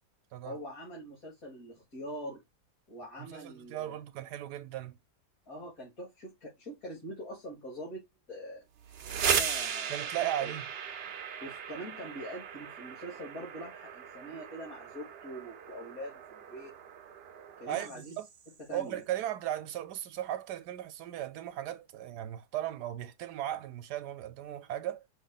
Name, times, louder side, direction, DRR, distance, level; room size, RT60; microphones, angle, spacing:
voice 1, 0.4-2.4 2.9-4.0 5.5-8.0 8.3-8.6 9.2-10.5 11.4-16.7 17.6-18.2 18.6-19.0, equal, 60° left, 2.5 m, -44 dB
voice 2, 3.2-5.0 9.9-10.6 17.7-18.3 18.7-25.0, right 12 dB, 80° right, 1.2 m, -37 dB
sound 1, 8.8-18.5, right 8 dB, 65° right, 0.6 m, -37 dB
5.4 x 2.3 x 4.0 m
omnidirectional pair, 1.7 m